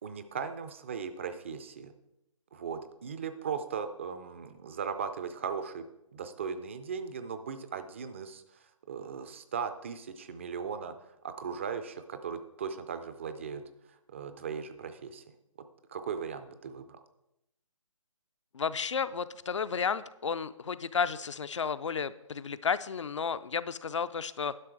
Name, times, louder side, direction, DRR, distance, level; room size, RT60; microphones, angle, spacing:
voice 1, 0.0-1.9 2.5-5.9 6.1-13.7 14.1-15.2 15.9-17.0, right 6 dB, 25° right, 10 dB, 0.4 m, -38 dB
voice 2, 18.5-24.6, left 6 dB, 60° left, 14 dB, 0.5 m, -32 dB
11.0 x 6.0 x 4.6 m, 0.84 s
figure-of-eight pair, 150°, 17 cm